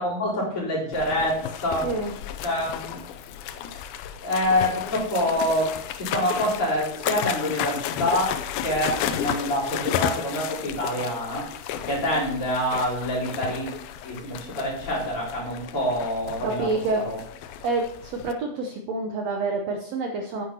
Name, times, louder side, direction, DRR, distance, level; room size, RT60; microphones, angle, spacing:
voice 1, 0.0-1.9 2.4-3.0 4.2-11.5 11.9-13.7 14.0-17.2, left 1 dB, 35° left, -5 dB, 4.7 m, -26 dB
sound 1, 0.9-18.3, left 9 dB, 85° left, 2.4 m, -33 dB
voice 2, 16.4-17.0 17.6-20.4, right 3 dB, 80° right, 3 dB, 1.5 m, -27 dB
9.7 x 9.6 x 2.9 m, 0.71 s
omnidirectional pair, 4.2 m